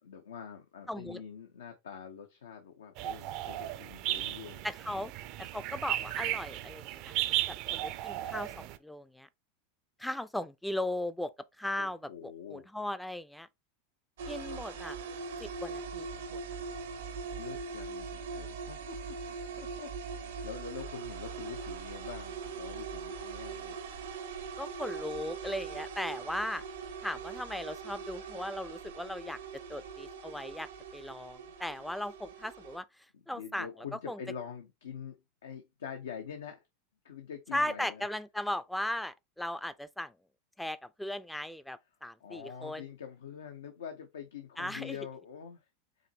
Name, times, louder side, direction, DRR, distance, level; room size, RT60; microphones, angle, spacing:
voice 1, 0.0-4.7 11.8-12.7 17.3-19.2 19.6-23.8 33.1-35.2 35.4-36.6 37.0-38.1 42.2-45.6, left 7 dB, 85° left, 0.7 m, -45 dB
voice 2, 0.9-1.2 4.6-5.1 5.4-7.1 7.7-9.3 10.0-11.3 11.6-13.5 14.3-15.0 15.4-16.4 24.6-26.6 27.0-29.4 29.7-32.9 33.3-33.7 34.1-34.2 37.5-40.1 40.6-42.8 44.6-45.0, left 1 dB, 5° left, 0.4 m, -37 dB
sound 1, 3.0-8.8, right 14 dB, 55° right, 0.5 m, -35 dB
sound 2, 14.2-32.8, right 5 dB, 85° right, 1.0 m, -41 dB
5.0 x 3.0 x 2.8 m
hypercardioid pair, 105°, 0 cm